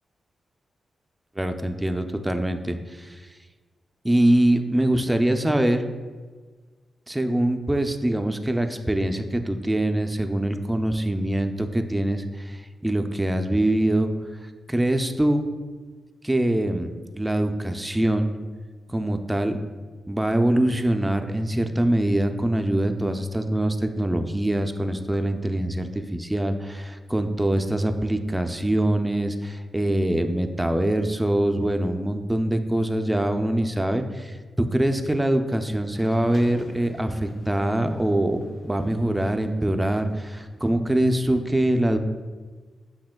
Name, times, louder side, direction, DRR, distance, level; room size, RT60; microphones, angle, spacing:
voice 1, 1.4-3.2 4.0-5.9 7.1-14.1 14.7-15.4 16.2-18.3 18.9-19.6 20.1-42.0, right 1 dB, 15° right, 7 dB, 0.4 m, -24 dB
sound 1, 35.9-40.9, left 1 dB, 50° left, 0.6 m, -47 dB
7.2 x 2.7 x 2.2 m, 1.4 s
supercardioid pair, 45°, 0 cm